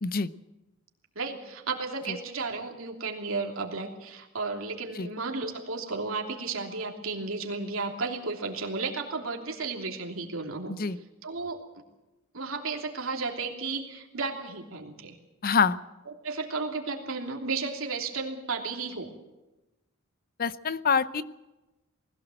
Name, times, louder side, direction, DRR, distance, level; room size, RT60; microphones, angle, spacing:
voice 1, 0.0-0.3 5.0-5.1 10.7-11.0 15.4-15.8 20.4-21.2, left 5 dB, 45° left, 15 dB, 0.7 m, -25 dB
voice 2, 1.1-10.7 11.2-11.6 12.3-15.2 16.2-19.1, right 4 dB, 70° right, 1 dB, 3.1 m, -33 dB
20.5 x 16.5 x 7.8 m, 1.0 s
head